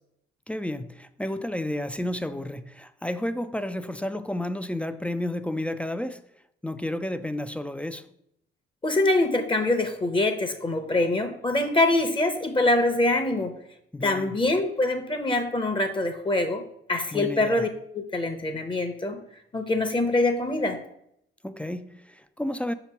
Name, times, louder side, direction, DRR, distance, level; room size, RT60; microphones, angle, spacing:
voice 1, 0.5-6.2 6.6-8.1 13.9-14.4 17.1-17.6 21.4-22.7, left 1 dB, 5° left, 0.3 m, -31 dB
voice 2, 8.8-13.5 14.0-16.6 16.9-17.7 17.9-19.2 19.5-20.8, left 2 dB, 25° left, 0.8 m, -24 dB
5.8 x 3.0 x 5.6 m
cardioid pair, 90°, 20 cm